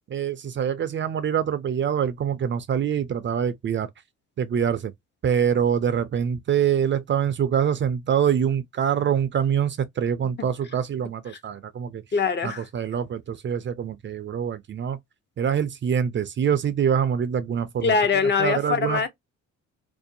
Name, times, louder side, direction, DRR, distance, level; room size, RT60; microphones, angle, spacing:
voice 1, 0.1-3.9 4.4-4.9 5.2-12.0 12.4-15.0 15.4-17.9 18.4-19.0, right 8 dB, 40° right, 0.4 m, -25 dB
voice 2, 12.1-12.6 17.8-19.1, left 5 dB, 35° left, 0.6 m, -23 dB
2.6 x 2.2 x 2.6 m
cardioid pair, 90°, 30 cm